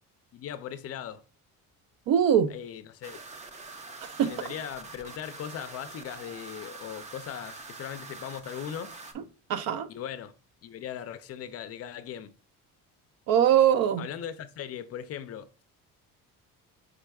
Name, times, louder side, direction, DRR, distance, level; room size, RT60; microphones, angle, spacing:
voice 1, 0.3-1.2 2.5-3.2 4.2-9.0 9.9-10.3 10.6-12.3 14.0-15.6, left 9 dB, 45° left, 0.4 m, -39 dB
voice 2, 2.1-2.5 4.0-4.3 9.2-9.3 9.5-9.9 13.3-14.1, right 9 dB, 75° right, 0.6 m, -22 dB
sound 1, 3.0-9.1, right 3 dB, 20° right, 0.4 m, -45 dB
4.8 x 4.6 x 2.2 m
cardioid pair, 170°, 35 cm